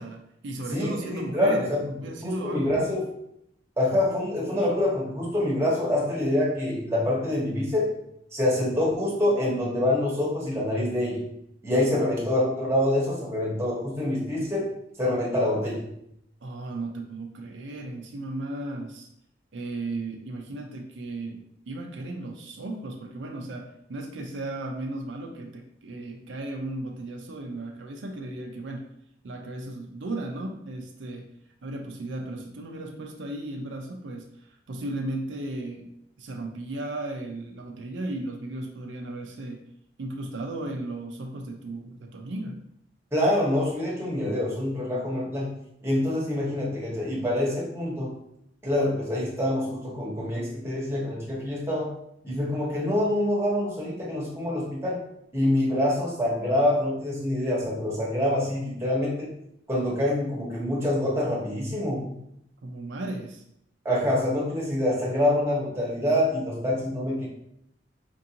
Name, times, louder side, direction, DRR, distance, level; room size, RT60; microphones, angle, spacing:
voice 1, 0.0-3.0 11.9-12.2 16.4-19.1 19.5-28.9 29.2-31.3 31.6-35.9 36.2-39.6 40.0-42.6 62.6-63.4, right 2 dB, 75° right, 2 dB, 0.5 m, -35 dB
voice 2, 0.7-1.8 2.2-3.1 3.8-7.9 8.3-11.2 11.6-14.7 15.0-15.8 43.1-45.5 45.8-48.1 48.6-51.9 52.2-55.0 55.3-59.3 59.7-62.2 63.8-67.3, left 1 dB, 15° right, -4 dB, 1.0 m, -26 dB
4.5 x 2.5 x 2.8 m, 0.75 s
head